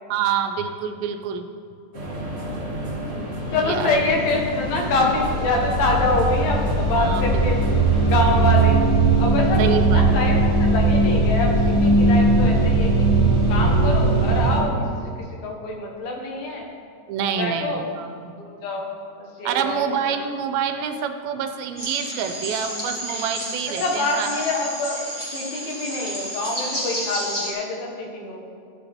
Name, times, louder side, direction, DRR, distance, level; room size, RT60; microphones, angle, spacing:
voice 1, 0.1-1.5 3.6-4.0 7.0-7.2 9.6-10.0 17.1-18.3 19.5-24.4, right 7 dB, 80° right, 7 dB, 2.4 m, -27 dB
sound 1, 1.9-8.7, right 1 dB, 50° right, 0.7 m, -31 dB
voice 2, 3.5-7.6 8.1-8.8 9.2-13.0 13.5-14.8 15.4-16.7 17.4-17.9 18.5-18.9 19.2-20.1 23.8-25.0 25.3-28.4, left 2 dB, 75° left, 0 dB, 3.0 m, -25 dB
sound 2, 3.6-3.7 3.9-14.6, right 2 dB, 15° right, 1.6 m, -19 dB
sound 3, 21.8-27.5, equal, 50° left, 0.4 m, -31 dB
14.5 x 8.3 x 3.5 m, 2.4 s
omnidirectional pair, 4.2 m